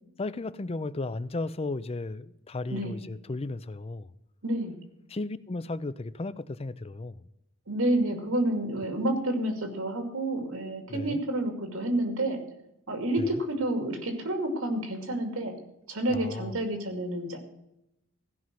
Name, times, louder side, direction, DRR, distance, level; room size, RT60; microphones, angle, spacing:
voice 1, 0.2-4.1 5.1-7.2 10.9-11.2 13.2-13.4 16.1-16.6, left 2 dB, 30° left, 0.5 m, -35 dB
voice 2, 4.4-4.7 7.7-12.4 12.9-15.5 15.9-17.4, right 1 dB, 85° right, 2.4 m, -29 dB
15.5 x 5.7 x 7.6 m
head